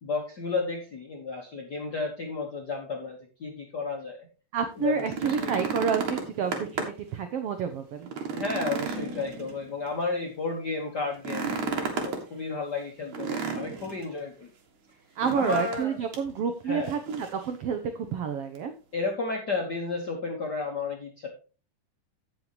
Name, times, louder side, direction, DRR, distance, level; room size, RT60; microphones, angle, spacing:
voice 1, 0.0-4.2 4.8-5.7 8.3-14.5 15.3-16.0 16.6-16.9 18.9-21.3, left 4 dB, 65° left, 0 dB, 1.0 m, -32 dB
voice 2, 4.5-8.1 15.2-18.7, right 6 dB, 85° right, 7 dB, 1.3 m, -29 dB
sound 1, 4.8-7.1 7.5-7.6 8.0-9.9 11.1-12.2 13.1-14.0 15.2-15.9 16.1-16.3 16.8-17.4 18.6-18.7, right 5 dB, 65° right, 2.9 m, -33 dB
16.5 x 5.6 x 3.0 m, 0.34 s
omnidirectional pair, 3.8 m